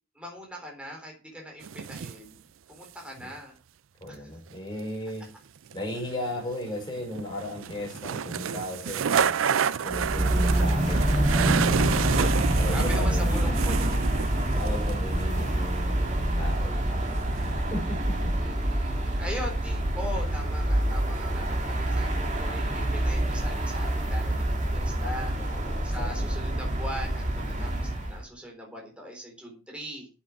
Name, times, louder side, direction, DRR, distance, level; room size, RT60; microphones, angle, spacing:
voice 1, 0.2-2.4 2.7-3.6 4.1-4.3 7.9-8.0 12.1-12.4 12.7-14.0 18.4-25.3 25.8-30.1, equal, 5° right, 0 dB, 3.7 m, -40 dB
sound 1, 1.6-2.2 4.8-4.9 5.7-15.2 17.0-17.6, right 7 dB, 85° right, 0.5 m, -30 dB
voice 2, 4.0-5.2 5.7-11.3 12.4-13.4 14.5-17.2 17.6-18.3 18.8-19.1 25.4-26.2, left 1 dB, 25° left, 0 dB, 5.2 m, -36 dB
sound 2, 9.9-28.2, right 1 dB, 35° right, 2.4 m, -26 dB
8.5 x 7.7 x 6.0 m, 0.35 s
head